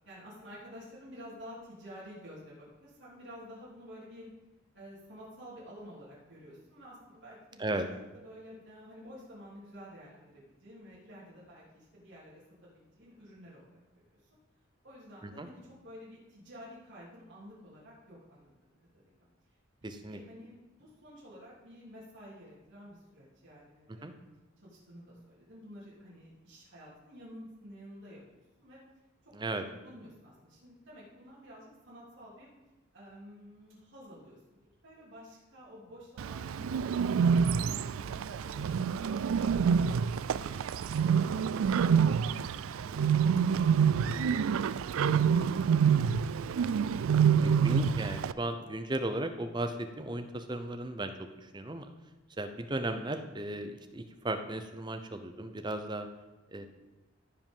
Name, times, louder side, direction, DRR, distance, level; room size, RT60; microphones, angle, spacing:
voice 1, 0.0-4.3 4.7-13.8 14.1-14.4 14.8-18.5 18.9-19.3 19.8-24.3 24.6-28.8 29.2-29.6 29.8-32.5 32.9-34.4 34.8-36.7 37.2-43.7 44.0-46.2 56.5-56.7, equal, 65° right, -8 dB, 3.2 m, -51 dB
voice 2, 19.8-20.2 24.0-24.1 29.3-29.6 47.4-51.1 51.5-51.9 52.4-56.1 56.5-56.7, right 1 dB, 20° right, 7 dB, 0.7 m, -35 dB
Bird, 36.2-48.3, right 7 dB, 90° right, 0.3 m, -27 dB
15.0 x 5.2 x 5.5 m, 1.1 s
head